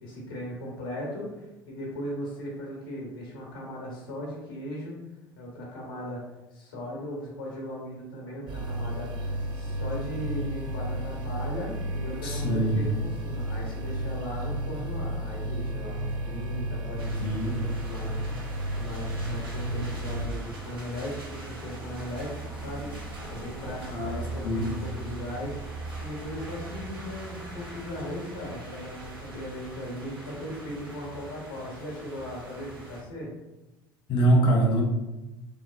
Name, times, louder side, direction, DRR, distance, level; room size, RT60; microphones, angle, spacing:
voice 1, 0.0-5.0 5.4-6.2 6.5-25.6 26.0-33.3, equal, 80° left, -3 dB, 0.8 m, -38 dB
sound 1, 8.5-20.3, right 1 dB, 40° right, 0.5 m, -32 dB
voice 2, 12.2-12.8 17.2-17.6 23.9-24.7 34.1-34.9, right 1 dB, 45° left, -1 dB, 0.6 m, -24 dB
sound 2, 17.0-33.0, right 2 dB, 85° right, 0.6 m, -40 dB
3.0 x 2.0 x 2.2 m, 1.0 s
hypercardioid pair, 65°, 12 cm